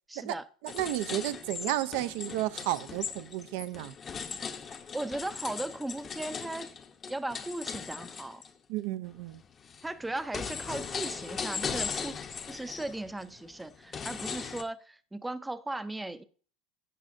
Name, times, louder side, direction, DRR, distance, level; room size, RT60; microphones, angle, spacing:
voice 1, 0.1-0.5 4.9-6.7 7.1-8.4 9.8-12.2 12.5-16.2, right 2 dB, 5° right, 0.5 m, -37 dB
voice 2, 0.6-3.9 8.7-9.4, right 15 dB, 65° right, 0.5 m, -32 dB
sound 1, 0.7-8.5 9.0-14.6, left 6 dB, 25° left, 0.7 m, -38 dB
12.0 x 8.6 x 2.6 m
supercardioid pair, 140°, 0 cm